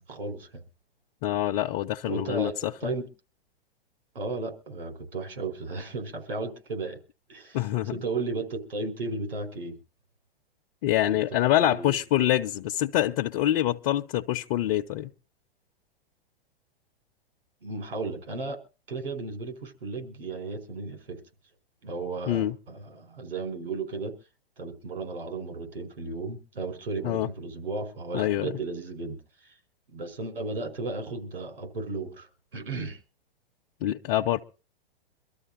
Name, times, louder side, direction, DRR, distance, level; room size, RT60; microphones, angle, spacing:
voice 1, 0.1-0.6 2.1-3.1 4.1-7.0 7.3-7.6 7.9-9.8 11.1-12.0 17.6-18.6 18.9-21.2 21.8-24.1 24.6-29.5 29.9-33.0, right 3 dB, 75° right, 4.9 m, -34 dB
voice 2, 1.2-2.9 7.5-7.9 10.8-15.1 22.3-22.5 27.0-27.3 28.1-28.6 33.8-34.4, left 13 dB, 40° left, 1.0 m, -25 dB
25.0 x 13.0 x 2.7 m
figure-of-eight pair, 105°, 30 cm